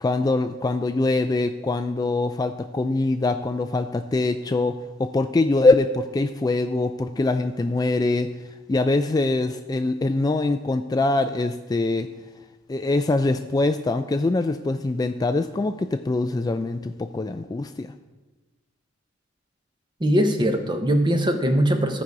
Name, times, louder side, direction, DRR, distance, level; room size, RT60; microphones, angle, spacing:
voice 1, 0.0-8.3 8.7-12.1 12.7-17.9, left 2 dB, 20° left, 8 dB, 0.3 m, -23 dB
voice 2, 20.0-22.0, equal, 25° right, 6 dB, 0.8 m, -21 dB
14.0 x 5.3 x 4.7 m, 1.2 s
head